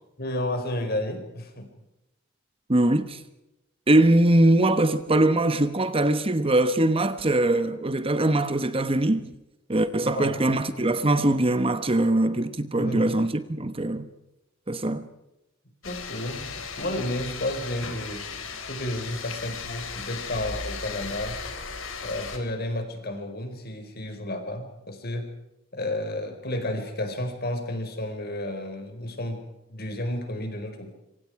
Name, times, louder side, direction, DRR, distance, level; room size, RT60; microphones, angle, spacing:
voice 1, 0.2-1.7 10.0-10.4 12.7-13.2 15.8-18.3 18.6-21.4 22.0-25.3 25.7-30.9, left 1 dB, 50° left, 4.7 m, -32 dB
voice 2, 2.7-3.2 3.9-9.3 9.7-14.1 14.7-15.1, right 1 dB, 30° right, 1.1 m, -22 dB
sound 1, 15.8-22.4, left 5 dB, 85° left, 4.0 m, -36 dB
26.5 x 25.0 x 4.8 m
head